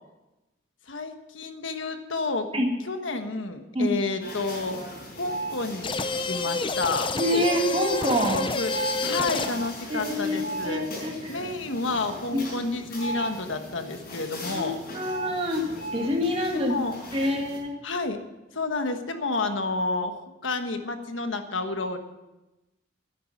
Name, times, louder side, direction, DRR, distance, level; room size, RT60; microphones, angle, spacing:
voice 1, 0.9-2.5 2.9-4.8 5.1-5.9 6.2-7.1 8.3-8.7 9.0-10.8 11.3-14.8 16.5-16.9 17.8-18.2 18.5-20.1 20.4-22.0, left 3 dB, 85° left, 7 dB, 1.3 m, -30 dB
sound 1, 4.2-17.6, right 1 dB, 50° left, 5.2 m, -37 dB
sound 2, 5.8-9.7, left 3 dB, 25° left, 0.6 m, -29 dB
voice 2, 7.1-8.4 9.9-11.4 12.3-12.4 14.5-15.6 15.9-16.7 17.1-17.7, equal, 30° right, 1 dB, 1.9 m, -26 dB
10.5 x 9.6 x 7.2 m, 1.0 s
head